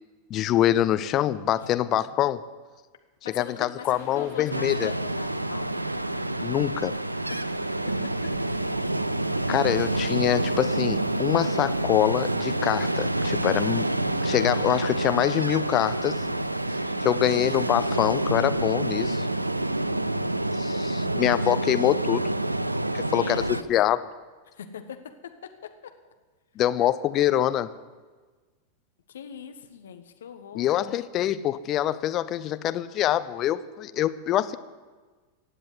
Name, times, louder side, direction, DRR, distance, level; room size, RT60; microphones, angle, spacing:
voice 1, 0.3-2.4 3.3-4.9 6.4-6.9 9.5-13.9 14.2-16.2 17.0-19.3 20.6-22.2 22.9-24.0 26.6-27.7 30.5-34.6, left 12 dB, 35° left, 13 dB, 0.7 m, -25 dB
voice 2, 3.2-5.7 7.3-7.6 7.8-8.7 16.8-17.3 23.0-23.7 24.5-25.0 29.1-30.9, left 8 dB, 65° left, 7 dB, 1.3 m, -42 dB
sound 1, 3.8-16.7, right 2 dB, 35° right, 3.5 m, -52 dB
Ocean, 4.5-23.6, right 1 dB, 85° right, 0.5 m, -27 dB
16.0 x 7.9 x 9.6 m, 1.3 s
figure-of-eight pair, 90°, 0 cm